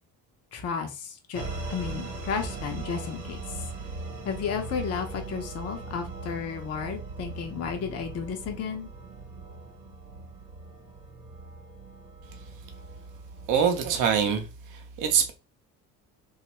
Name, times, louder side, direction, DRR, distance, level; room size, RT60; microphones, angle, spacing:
voice 1, 0.5-1.4 1.7-3.4 4.2-8.9, left 6 dB, 35° left, 0.7 m, -33 dB
sound 1, 1.3-14.4, right 3 dB, 75° right, 0.9 m, -40 dB
voice 2, 13.5-15.3, right 7 dB, 40° right, 0.7 m, -24 dB
2.9 x 2.3 x 2.9 m
figure-of-eight pair, 50°, 45 cm